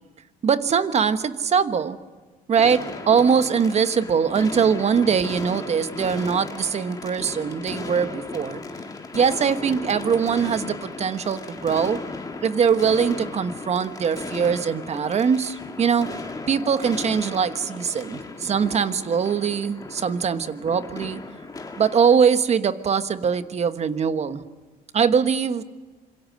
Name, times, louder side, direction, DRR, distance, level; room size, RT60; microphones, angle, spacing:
voice 1, 0.4-2.0 2.5-8.6 9.1-12.0 12.4-16.1 16.5-21.2 21.8-24.4 24.9-25.6, right 6 dB, 40° right, 11 dB, 1.2 m, -22 dB
sound 1, 2.6-22.2, left 3 dB, 20° left, 2.1 m, -36 dB
26.5 x 23.5 x 6.4 m, 1.3 s
cardioid pair, 110°, 17 cm